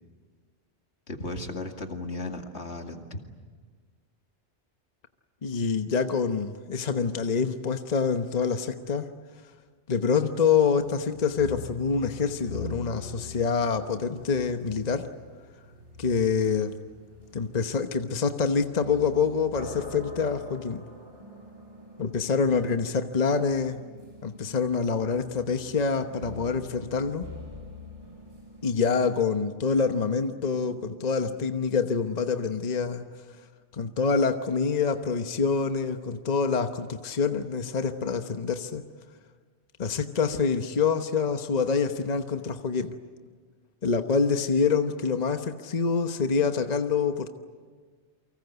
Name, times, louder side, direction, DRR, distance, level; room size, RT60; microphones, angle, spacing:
voice 1, 1.1-3.2, left 2 dB, 75° left, 4 dB, 2.5 m, -35 dB
voice 2, 5.4-9.1 9.9-15.1 16.0-16.8 17.3-20.8 22.0-23.8 24.2-27.3 28.6-33.1 33.7-38.8 39.8-43.0 43.8-47.3, left 5 dB, 40° left, 7 dB, 1.1 m, -26 dB
sound 1, 10.7-29.3, left 2 dB, 55° right, 7.9 m, -45 dB
sound 2, 21.2-31.2, right 2 dB, 25° right, 6.0 m, -51 dB
30.0 x 24.5 x 8.1 m, 1.5 s
omnidirectional pair, 1.2 m